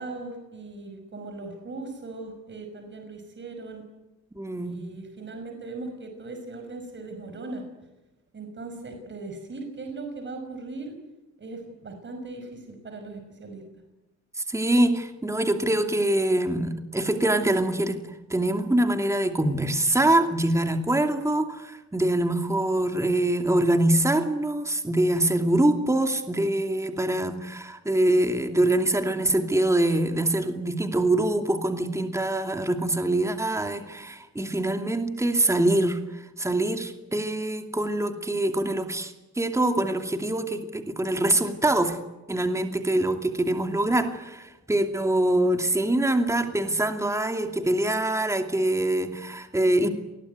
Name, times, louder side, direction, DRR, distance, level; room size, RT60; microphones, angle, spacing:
voice 1, 0.0-3.8 4.6-7.6 8.3-10.9 11.4-13.6, right 3 dB, 40° right, 5 dB, 5.6 m, -39 dB
voice 2, 4.3-4.8 14.4-42.0 42.3-49.9, right 1 dB, 10° right, 6 dB, 2.6 m, -24 dB
27.5 x 21.0 x 9.5 m, 1.0 s
cardioid pair, 90°, 30 cm